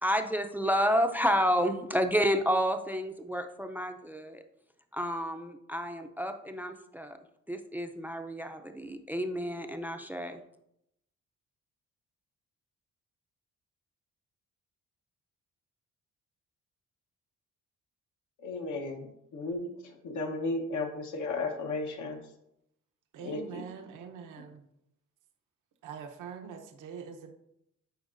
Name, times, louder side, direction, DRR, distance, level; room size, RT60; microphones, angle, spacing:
voice 1, 0.0-4.4 4.9-7.2 7.5-10.4, equal, 5° right, 6 dB, 0.5 m, -30 dB
voice 2, 18.4-22.2 23.2-23.6, left 3 dB, 75° left, 3 dB, 1.1 m, -35 dB
voice 3, 23.1-24.7 25.8-27.3, right 7 dB, 85° right, 5 dB, 0.9 m, -44 dB
10.0 x 4.5 x 2.6 m, 0.79 s
cardioid pair, 90°, 30 cm